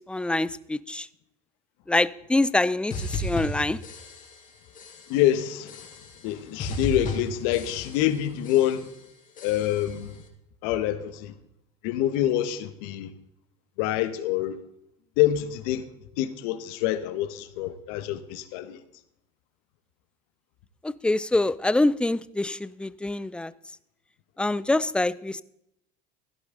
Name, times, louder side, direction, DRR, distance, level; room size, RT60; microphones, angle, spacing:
voice 1, 0.1-1.1 1.9-3.8 20.8-23.5 24.4-25.4, left 2 dB, 5° left, 0.5 m, -25 dB
sound 1, 2.9-4.5 4.7-5.3 5.7-6.3 6.6-8.2 8.4-9.0 9.4-10.0, left 1 dB, 45° left, 3.1 m, -35 dB
voice 2, 5.1-5.8 6.2-8.9 9.4-10.2 10.6-11.3 11.8-13.1 13.8-14.6 15.2-15.8 16.2-18.8, left 12 dB, 75° left, 1.2 m, -26 dB
15.5 x 11.5 x 3.9 m
supercardioid pair, 90°, 19 cm